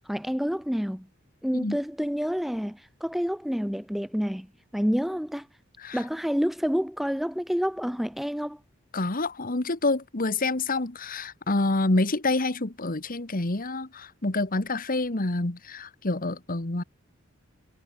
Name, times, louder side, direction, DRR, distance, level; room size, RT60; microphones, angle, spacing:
voice 1, 0.1-1.1 1.4-4.5 4.7-5.5 5.9-8.6, equal, ahead, 0.5 m, -28 dB
voice 2, 8.9-16.8, left 2 dB, 45° left, 1.7 m, -27 dB
head